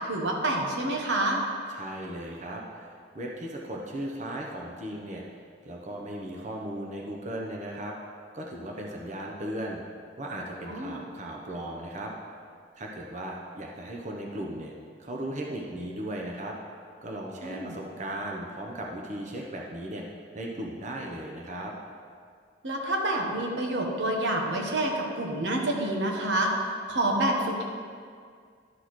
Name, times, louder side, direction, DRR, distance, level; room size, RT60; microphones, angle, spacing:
voice 1, 0.1-1.4 10.7-11.0 17.4-17.7 22.6-26.5 26.9-27.6, right 1 dB, 85° right, 0 dB, 1.1 m, -28 dB
voice 2, 1.7-5.2 5.6-8.0 8.3-9.8 10.2-12.1 12.8-14.7 15.0-16.6 17.0-20.0 20.3-21.7, right 1 dB, 40° right, -1 dB, 0.8 m, -37 dB
11.5 x 6.1 x 3.1 m, 2.1 s
head